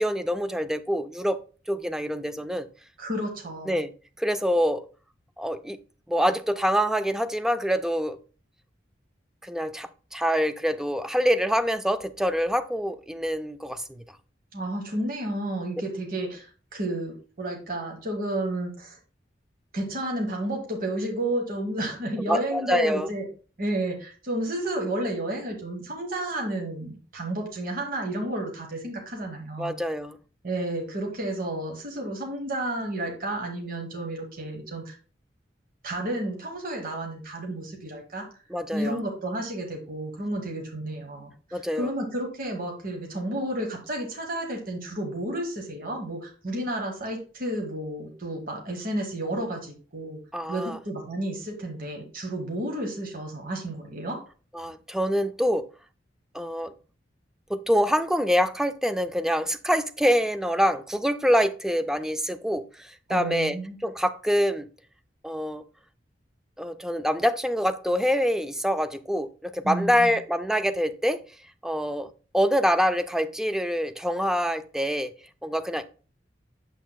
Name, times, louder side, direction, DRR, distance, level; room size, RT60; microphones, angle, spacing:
voice 1, 0.0-1.4 1.7-2.7 3.7-3.9 4.2-4.8 5.4-5.8 6.1-8.2 9.4-14.0 22.3-23.1 29.6-30.2 38.5-39.0 41.5-41.9 50.3-50.8 54.5-55.7 56.3-56.7 57.5-63.6 63.8-64.7 65.2-65.6 66.6-71.2 71.6-75.1 75.4-75.8, equal, 5° right, 0.3 m, -25 dB
voice 2, 3.0-3.7 14.5-19.0 19.7-23.2 23.6-29.7 30.4-34.9 35.8-38.2 38.7-41.3 41.7-50.2 50.5-54.2 63.1-63.8 69.6-70.2, right 1 dB, 50° right, 1.2 m, -31 dB
7.0 x 6.1 x 2.2 m
head